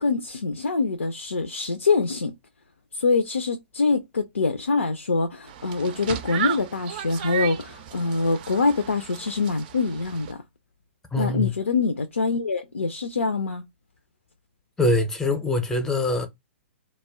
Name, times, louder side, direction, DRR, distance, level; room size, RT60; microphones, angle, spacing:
voice 1, 0.0-2.3 2.9-10.4 11.2-13.6, left 4 dB, 80° left, 0.4 m, -24 dB
sound 1, 5.5-10.3, right 10 dB, 45° right, 0.4 m, -34 dB
voice 2, 11.1-11.5 14.8-16.3, left 2 dB, 5° left, 0.6 m, -23 dB
2.2 x 2.1 x 3.4 m
figure-of-eight pair, 115°, 7 cm